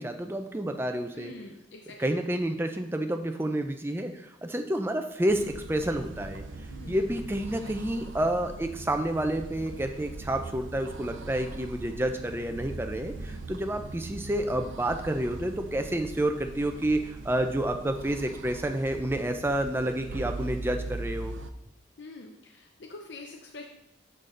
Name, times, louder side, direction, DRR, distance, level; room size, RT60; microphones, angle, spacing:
voice 1, 0.0-1.3 2.0-21.3, right 1 dB, 10° right, 5 dB, 0.5 m, -29 dB
voice 2, 1.1-2.0 6.7-7.0 7.6-7.7 13.2-13.5 22.0-23.6, left 2 dB, 65° left, 2 dB, 0.6 m, -45 dB
sound 1, 5.3-21.5, right 2 dB, 85° right, 0.6 m, -40 dB
6.7 x 6.1 x 3.8 m, 0.81 s
head